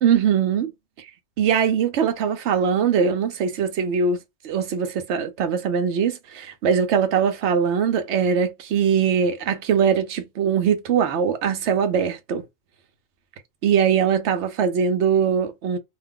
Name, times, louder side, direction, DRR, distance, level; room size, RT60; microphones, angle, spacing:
voice 1, 0.0-0.7 1.4-4.2 4.4-12.4 13.6-15.8, right 7 dB, 65° right, 0.9 m, -21 dB
2.5 x 2.3 x 3.4 m
omnidirectional pair, 1.3 m